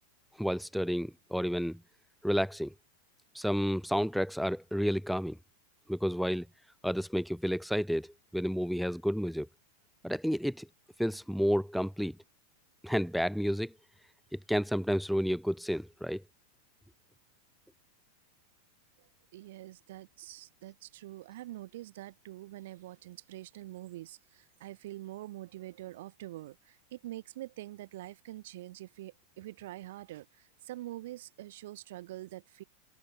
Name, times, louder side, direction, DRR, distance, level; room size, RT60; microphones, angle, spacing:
voice 1, 0.4-1.8 2.2-2.7 3.3-5.4 5.9-6.5 6.8-9.5 10.0-10.7 11.0-12.2 12.8-13.7 14.3-16.2, equal, ahead, 0.7 m, -31 dB
voice 2, 19.0-32.6, right 16 dB, 55° right, 1.4 m, -45 dB
figure-of-eight pair, 90°, 0 cm